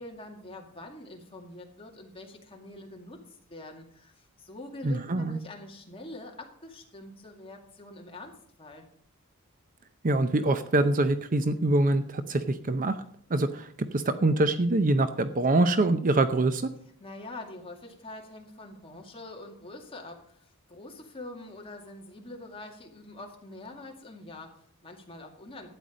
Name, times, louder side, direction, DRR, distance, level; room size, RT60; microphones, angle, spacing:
voice 1, 0.0-8.3 8.6-8.9 17.0-25.7, left 2 dB, 25° left, 1 dB, 2.3 m, -45 dB
voice 2, 4.8-5.4 10.0-13.0 13.3-16.7, right 2 dB, 40° right, 11 dB, 0.6 m, -25 dB
12.0 x 9.2 x 5.1 m, 0.62 s
head